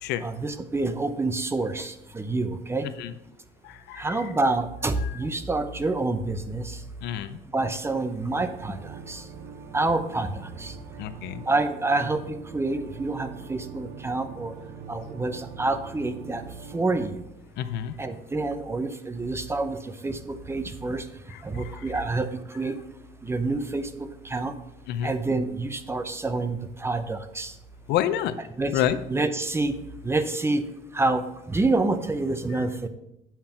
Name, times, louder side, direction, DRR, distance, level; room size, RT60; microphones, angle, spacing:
voice 1, 0.2-2.9 3.9-6.8 7.5-9.2 9.7-10.7 11.5-14.5 14.9-16.4 16.7-17.2 18.0-21.1 21.4-22.7 23.2-24.5 25.0-27.5 28.6-28.7 29.1-29.7 30.0-30.6 30.9-31.2 31.5-32.9, right 2 dB, 15° right, 9 dB, 0.7 m, -27 dB
voice 2, 3.6-4.2 5.0-5.2 7.0-7.4 11.0-11.4 17.6-17.9 21.3-21.8 24.9-25.1 27.9-28.3 28.7-29.0 32.5-32.6, left 11 dB, 85° left, 13 dB, 0.6 m, -29 dB
sound 1, 8.4-17.1, right 6 dB, 85° right, 0.9 m, -43 dB
8.8 x 5.8 x 4.4 m, 0.82 s
cardioid pair, 110°, 17 cm